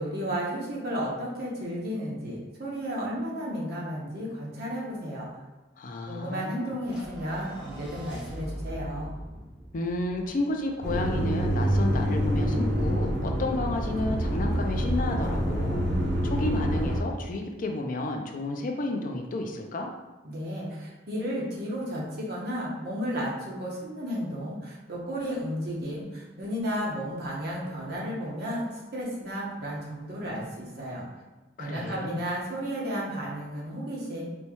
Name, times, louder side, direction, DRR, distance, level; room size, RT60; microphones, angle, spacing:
voice 1, 0.0-5.3 6.1-9.1 20.2-31.0 31.6-34.2, equal, 60° right, -4 dB, 1.0 m, -33 dB
voice 2, 5.8-6.7 9.7-15.8 16.2-19.9 31.6-32.2, left 2 dB, 50° left, 3 dB, 0.4 m, -31 dB
sound 1, 6.8-11.2, equal, 5° right, 0.9 m, -42 dB
sound 2, 10.8-17.0, equal, 75° right, 0.7 m, -26 dB
4.3 x 2.3 x 2.9 m, 1.2 s
head